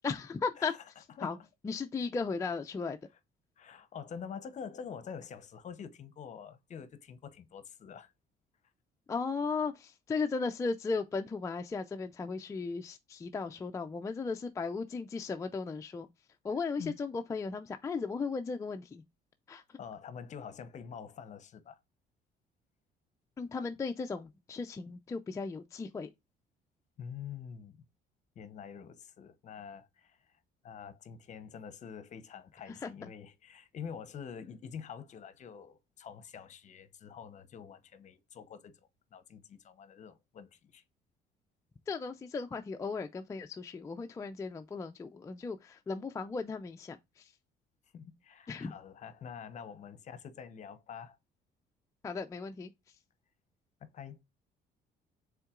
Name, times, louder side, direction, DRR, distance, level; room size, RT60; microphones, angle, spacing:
voice 1, 0.0-0.7 1.2-1.4 1.6-3.0 9.1-16.1 16.4-19.0 19.5-19.6 23.4-26.1 32.8-32.9 41.9-47.2 48.5-48.7 52.0-52.7, left 4 dB, 20° left, 0.3 m, -36 dB
voice 2, 1.1-1.5 3.6-8.1 16.5-16.9 19.8-21.8 27.0-27.8 28.4-40.8 47.9-51.2 53.8-54.2, left 7 dB, 45° left, 0.7 m, -46 dB
5.5 x 3.7 x 2.3 m
cardioid pair, 110°, 17 cm